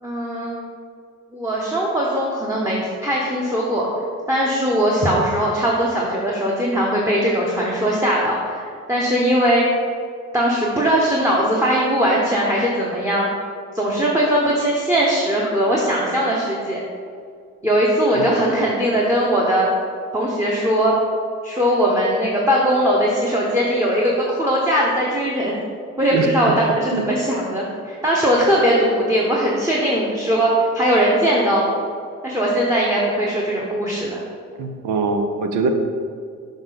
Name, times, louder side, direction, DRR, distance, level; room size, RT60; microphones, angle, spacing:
voice 1, 0.0-0.6 1.3-3.9 4.3-9.6 10.3-13.3 13.7-16.8 17.6-19.7 20.1-20.9 21.4-25.6 26.0-31.8 32.2-34.2, equal, 10° right, -4 dB, 1.0 m, -20 dB
voice 2, 18.2-18.5 26.1-26.3 26.9-27.0 34.6-35.7, right 4 dB, 85° right, 6 dB, 0.7 m, -23 dB
6.2 x 5.1 x 4.0 m, 2.2 s
cardioid pair, 90°, 30 cm